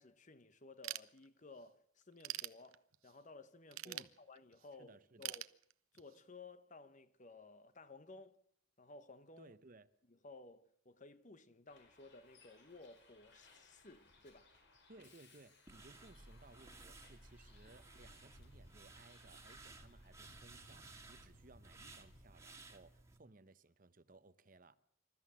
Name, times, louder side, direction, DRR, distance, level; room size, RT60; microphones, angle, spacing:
voice 1, 0.0-5.4 5.9-8.4 8.8-9.5 10.1-14.5, left 3 dB, 35° left, 1.0 m, -57 dB
Ratchet pawl / Tools, 0.8-1.6 2.0-3.2 3.7-4.7 5.2-6.2, right 14 dB, 85° right, 0.8 m, -45 dB
voice 2, 4.8-5.4 9.4-9.9 14.9-24.8, right 2 dB, 40° right, 0.9 m, -62 dB
Bus, 11.7-22.2, left 1 dB, 55° left, 4.4 m, -64 dB
sound 1, 15.7-23.2, right 3 dB, 15° right, 1.9 m, -58 dB
26.5 x 13.5 x 7.6 m
head